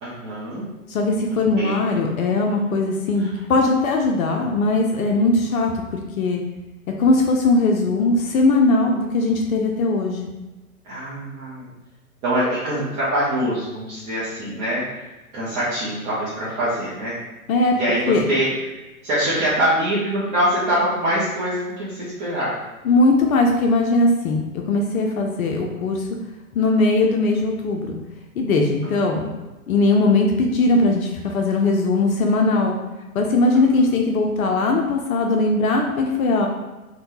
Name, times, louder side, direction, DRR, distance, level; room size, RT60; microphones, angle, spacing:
voice 1, 0.0-0.7 1.6-1.8 3.2-3.3 10.8-11.7 12.2-15.1 15.3-17.1 17.8-18.7 19.0-22.5 28.8-29.2 33.5-33.8, right 1 dB, 15° right, -10 dB, 0.4 m, -24 dB
voice 2, 0.9-6.4 7.0-10.3 17.5-17.7 18.1-18.2 22.8-26.1 26.5-28.0 28.4-29.3 29.7-32.8 33.1-36.5, left 2 dB, 65° left, 2 dB, 0.6 m, -19 dB
3.4 x 2.2 x 2.8 m, 1.1 s
hypercardioid pair, 120°, 45 cm